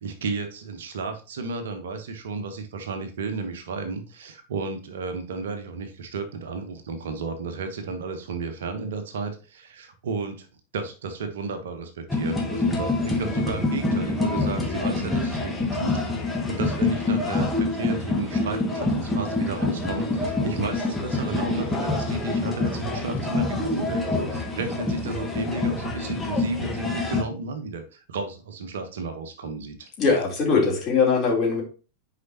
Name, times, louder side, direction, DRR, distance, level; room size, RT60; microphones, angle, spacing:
voice 1, 0.0-10.5 10.7-16.0 16.5-29.9, right 4 dB, 60° right, 7 dB, 1.2 m, -33 dB
sound 1, 12.1-27.2, left 2 dB, 10° left, 1.6 m, -26 dB
voice 2, 30.0-31.6, left 5 dB, 30° left, -3 dB, 3.6 m, -21 dB
9.8 x 5.1 x 2.9 m, 0.35 s
figure-of-eight pair, 90°, 0 cm